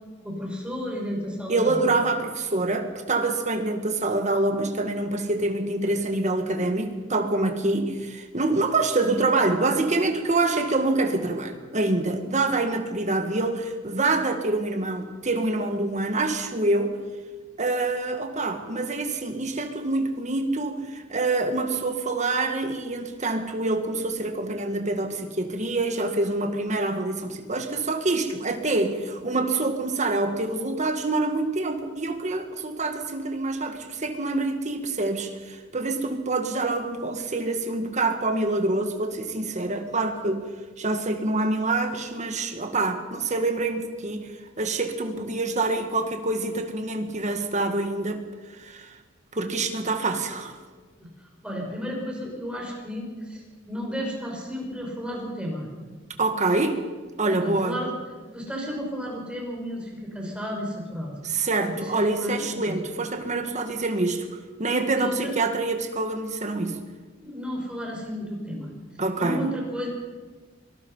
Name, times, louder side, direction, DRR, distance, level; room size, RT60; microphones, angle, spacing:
voice 1, 0.2-1.9 51.0-55.7 57.2-57.9 58.3-61.1 61.7-62.8 64.9-65.4 67.2-68.7 69.1-69.9, equal, 5° right, -1 dB, 6.0 m, -33 dB
voice 2, 1.5-17.0 17.6-40.5 40.8-44.3 44.6-48.2 48.5-49.0 49.3-50.6 56.2-56.8 57.2-57.8 61.2-64.3 64.6-66.8 69.0-69.4, right 2 dB, 40° right, 5 dB, 2.0 m, -26 dB
25.0 x 19.0 x 5.7 m, 1.4 s
head